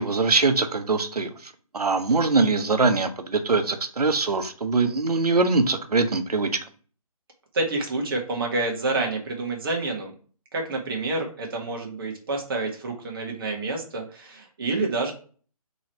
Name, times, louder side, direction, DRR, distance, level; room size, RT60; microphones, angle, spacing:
voice 1, 0.0-1.3 1.7-6.5, right 3 dB, 90° right, 7 dB, 0.9 m, -22 dB
voice 2, 7.5-10.1 10.5-15.1, right 2 dB, 35° right, 1 dB, 1.3 m, -28 dB
3.9 x 3.1 x 4.3 m, 0.40 s
figure-of-eight pair, 160°, 19 cm